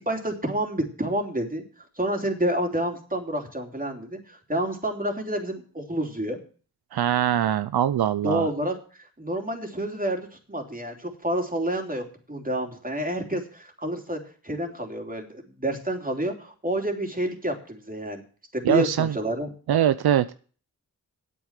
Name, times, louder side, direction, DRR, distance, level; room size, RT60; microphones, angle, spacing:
voice 1, 0.0-1.6 2.0-6.4 8.2-8.7 9.2-18.2 18.5-19.5, right 1 dB, 25° right, 3 dB, 3.1 m, -29 dB
voice 2, 6.9-8.5 18.6-19.2 19.7-20.3, right 10 dB, 85° right, 13 dB, 0.6 m, -22 dB
8.6 x 8.5 x 7.4 m, 0.41 s
cardioid pair, 45°, 37 cm